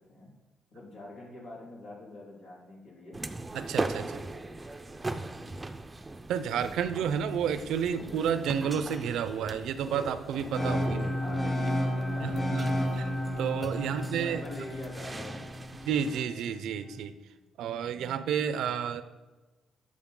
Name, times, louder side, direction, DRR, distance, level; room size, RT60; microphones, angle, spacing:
voice 1, 0.7-3.2 3.9-4.6 4.9-5.6 11.2-13.0 13.7-15.7 17.8-18.3, left 2 dB, 80° left, -4 dB, 2.9 m, -46 dB
sound 1, 3.1-16.2, right 2 dB, 20° right, 0.5 m, -40 dB
voice 2, 3.5-4.2 6.3-11.1 12.2-12.7 13.4-14.4 15.8-17.1 17.6-19.0, right 8 dB, 80° right, 12 dB, 0.6 m, -31 dB
sound 2, 10.5-16.5, left 1 dB, 20° left, 2.1 m, -32 dB
10.5 x 6.2 x 3.8 m, 1.2 s
cardioid pair, 90°, 0 cm